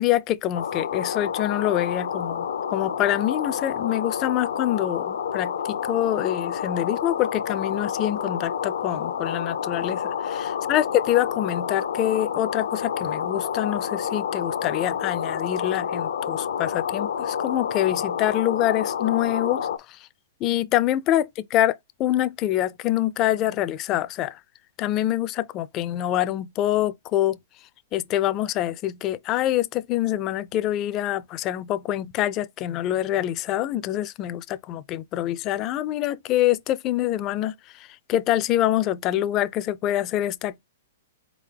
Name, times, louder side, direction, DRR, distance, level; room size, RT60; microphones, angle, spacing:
voice 1, 0.0-20.1 20.4-24.4 24.8-27.4 27.9-40.6, left 13 dB, 30° left, 0.4 m, -25 dB
sound 1, 0.5-19.8, left 7 dB, 85° left, 0.6 m, -29 dB
4.0 x 3.6 x 3.3 m
hypercardioid pair, 150°, 0 cm